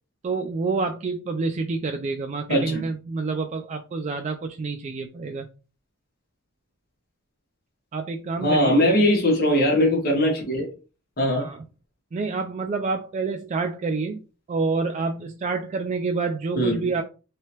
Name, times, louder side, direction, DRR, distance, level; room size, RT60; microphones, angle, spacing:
voice 1, 0.2-5.5 7.9-8.8 11.4-11.6 12.1-14.2 14.5-17.0, right 4 dB, 35° right, 0.3 m, -28 dB
voice 2, 2.5-2.8 8.4-10.7 11.2-11.5 16.6-16.8, left 1 dB, 45° left, 1.3 m, -20 dB
3.2 x 2.7 x 2.9 m
head